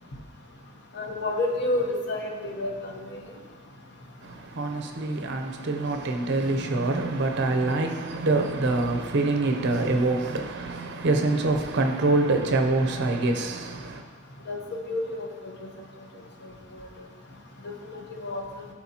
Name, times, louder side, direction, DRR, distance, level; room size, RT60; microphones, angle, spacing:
voice 1, 0.9-3.2 14.5-14.6 14.9-15.5 17.9-18.4, left 2 dB, 55° left, 1.0 m, -29 dB
voice 2, 4.2-14.0, right 2 dB, 55° right, 0.7 m, -25 dB
12.0 x 4.3 x 2.9 m
head